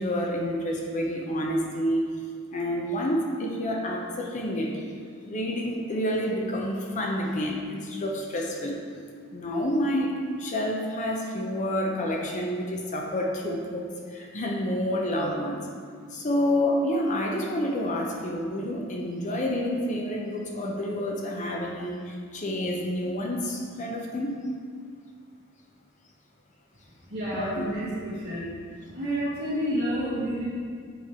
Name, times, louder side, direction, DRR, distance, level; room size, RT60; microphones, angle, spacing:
voice 1, 0.0-2.1 2.5-4.9 5.2-8.8 9.3-15.7 16.1-24.4 27.3-27.7, left 1 dB, 35° left, 0 dB, 0.6 m, -29 dB
voice 2, 27.1-28.5 28.9-30.4, equal, 45° right, -12 dB, 1.6 m, -29 dB
8.1 x 3.1 x 4.2 m, 2.1 s
head